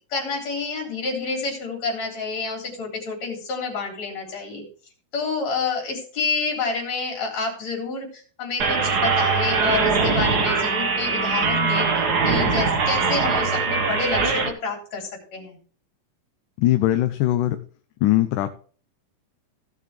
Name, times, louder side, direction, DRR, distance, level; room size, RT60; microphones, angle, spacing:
voice 1, 0.1-4.6 5.1-11.9 12.2-15.6, left 4 dB, 60° left, 0 dB, 4.8 m, -28 dB
sound 1, 8.6-14.5, right 4 dB, 55° right, 1.1 m, -21 dB
voice 2, 16.6-17.6 18.0-18.5, left 14 dB, 85° left, 8 dB, 2.2 m, -20 dB
16.5 x 6.7 x 3.4 m, 0.42 s
omnidirectional pair, 3.6 m